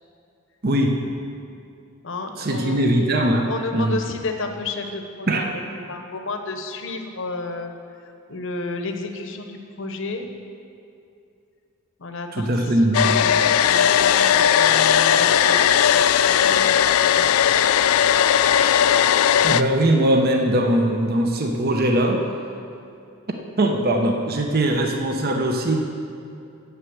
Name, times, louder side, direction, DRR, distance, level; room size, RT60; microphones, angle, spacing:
voice 1, 0.6-1.0 2.4-4.0 5.3-5.5 12.3-13.2 19.4-22.2 23.3-25.8, right 1 dB, 45° right, 3 dB, 0.9 m, -21 dB
voice 2, 2.0-2.8 3.5-5.6 5.9-7.7 8.3-10.3 12.0-12.7 13.0-17.6, left 3 dB, 65° left, 5 dB, 1.0 m, -32 dB
Domestic sounds home sounds, 12.9-19.6, left 9 dB, 85° left, 0.3 m, -17 dB
9.5 x 7.0 x 7.9 m, 2.6 s
head